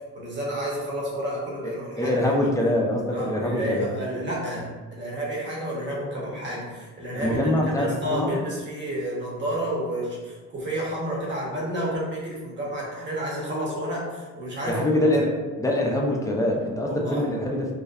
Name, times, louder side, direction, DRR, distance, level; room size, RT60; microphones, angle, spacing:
voice 1, 0.1-2.5 3.1-15.0 16.8-17.2, right 1 dB, 35° right, -4 dB, 0.9 m, -30 dB
voice 2, 1.6-3.9 7.1-8.4 14.7-15.3 15.6-17.8, left 1 dB, 10° left, 0 dB, 0.4 m, -24 dB
2.6 x 2.1 x 2.3 m, 1.4 s
cardioid pair, 90°, 30 cm